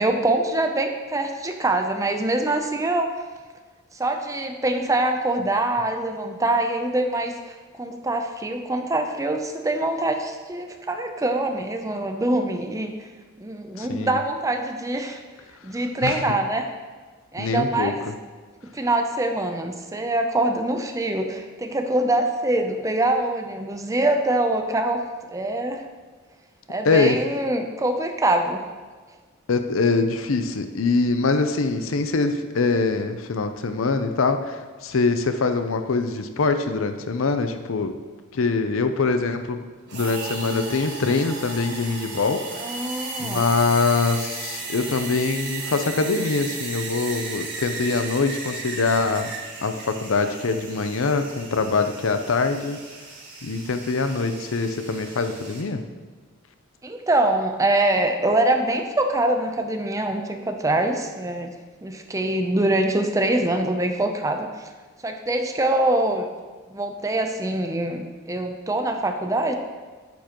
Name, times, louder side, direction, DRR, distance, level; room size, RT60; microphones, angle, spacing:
voice 1, 0.0-3.1 3.9-12.9 13.4-15.2 15.6-16.7 17.3-18.1 18.7-25.0 25.3-25.8 26.7-28.6 42.6-43.4 56.8-61.5 61.8-64.7 65.0-66.3 66.7-69.6, right 2 dB, 15° right, 5 dB, 0.5 m, -24 dB
voice 2, 13.8-14.2 16.0-16.2 17.4-17.9 26.8-27.2 29.5-38.0 38.3-39.6 39.9-42.7 43.2-49.3 49.6-52.8 53.4-55.8, left 4 dB, 70° left, 8 dB, 0.6 m, -23 dB
sound 1, 39.9-55.6, right 3 dB, 55° right, 1.6 m, -35 dB
9.2 x 7.2 x 3.0 m, 1.4 s
head